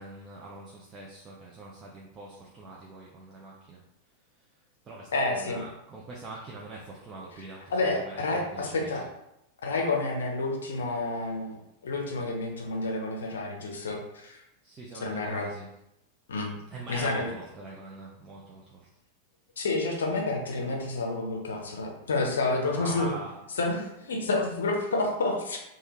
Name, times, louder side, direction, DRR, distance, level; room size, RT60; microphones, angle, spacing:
voice 1, 0.0-3.8 4.4-9.1 14.6-15.7 16.7-18.9 22.5-23.3, right 2 dB, 25° right, -4 dB, 0.5 m, -43 dB
voice 2, 5.1-5.6 7.7-9.0 9.6-14.4 15.0-15.5 16.3-16.5 16.9-17.3 19.6-23.1 23.6-25.6, left 2 dB, 65° left, 0 dB, 0.6 m, -29 dB
3.3 x 2.3 x 3.0 m, 0.84 s
figure-of-eight pair, 90°, 0 cm